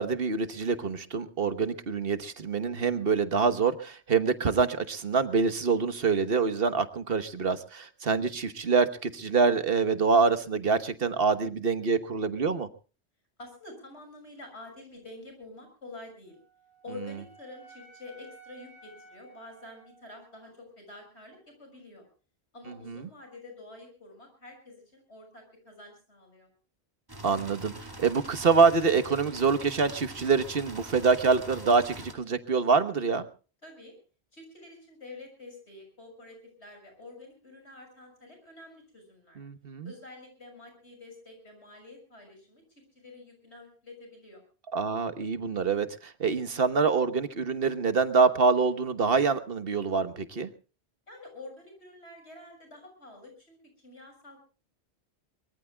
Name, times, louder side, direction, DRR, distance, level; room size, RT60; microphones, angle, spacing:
voice 1, 0.0-12.7 22.9-23.0 27.2-27.7 28.0-33.3 39.4-39.9 44.7-50.5, right 5 dB, 60° right, 11 dB, 1.4 m, -25 dB
voice 2, 13.4-16.4 16.8-22.1 22.5-26.5 33.6-34.0 34.3-39.4 39.8-42.6 42.9-44.4 51.1-53.6 53.8-54.4, left 2 dB, 85° left, 5 dB, 6.8 m, -48 dB
Wind instrument woodwind instrument, 16.3-20.5, right 2 dB, 55° left, 5.4 m, -54 dB
sound 1, 27.1-32.1, right 1 dB, 20° right, 2.2 m, -44 dB
23.5 x 23.0 x 2.3 m, 0.36 s
omnidirectional pair, 1.1 m